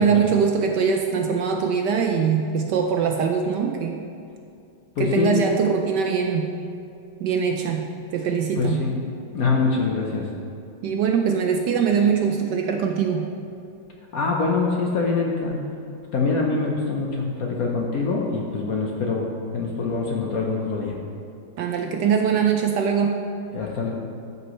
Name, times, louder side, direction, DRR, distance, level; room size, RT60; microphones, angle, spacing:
voice 1, 0.0-4.0 5.0-6.5 7.2-8.9 10.8-13.3 21.6-23.2, right 6 dB, 70° right, 3 dB, 1.0 m, -22 dB
voice 2, 5.0-5.3 8.6-8.9 9.3-10.3 14.1-15.6 16.1-19.3 19.5-20.9 23.5-23.9, left 4 dB, 60° left, -1 dB, 1.0 m, -24 dB
13.5 x 5.5 x 3.1 m, 2.6 s
omnidirectional pair, 2.2 m